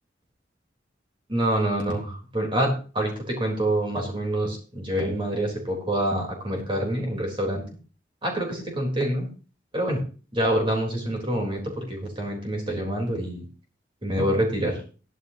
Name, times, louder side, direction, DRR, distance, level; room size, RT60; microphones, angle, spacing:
voice 1, 1.3-7.6 8.2-9.3 9.7-10.0 10.3-13.4 14.0-14.8, right 1 dB, 30° right, 1 dB, 3.9 m, -26 dB
16.0 x 12.0 x 2.9 m, 0.36 s
head